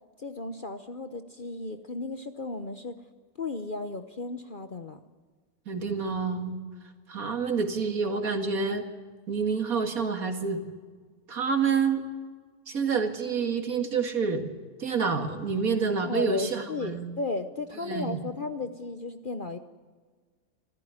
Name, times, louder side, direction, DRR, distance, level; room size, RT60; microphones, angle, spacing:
voice 1, 0.2-3.0 3.4-5.0 16.0-19.6, left 2 dB, 40° left, 9 dB, 0.9 m, -34 dB
voice 2, 5.7-6.6 7.1-8.8 9.3-10.6 11.3-12.0 12.7-14.5 14.8-17.1 17.8-18.2, right 5 dB, 65° right, 6 dB, 2.5 m, -28 dB
26.5 x 14.0 x 9.9 m, 1.5 s
omnidirectional pair, 1.6 m